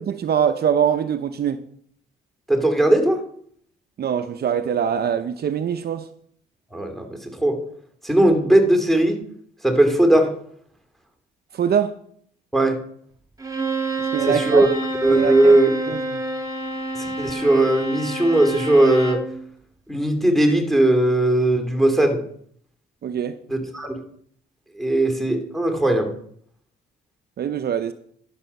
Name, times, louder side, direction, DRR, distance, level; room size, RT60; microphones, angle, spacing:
voice 1, 0.2-1.6 4.0-6.0 11.5-11.9 14.0-14.6 15.1-15.5 15.9-16.2 23.0-23.4 27.4-27.9, right 8 dB, 55° right, 11 dB, 0.7 m, -23 dB
voice 2, 2.5-3.2 6.7-7.6 8.0-9.2 9.6-10.3 12.5-12.8 14.2-14.7 15.0-15.7 17.0-19.2 19.9-22.2 23.5-23.9 24.8-26.1, right 1 dB, ahead, 5 dB, 2.4 m, -18 dB
Bowed string instrument, 13.4-19.3, right 2 dB, 20° right, 2.3 m, -28 dB
11.5 x 6.9 x 5.4 m, 0.64 s
cardioid pair, 90°, 20 cm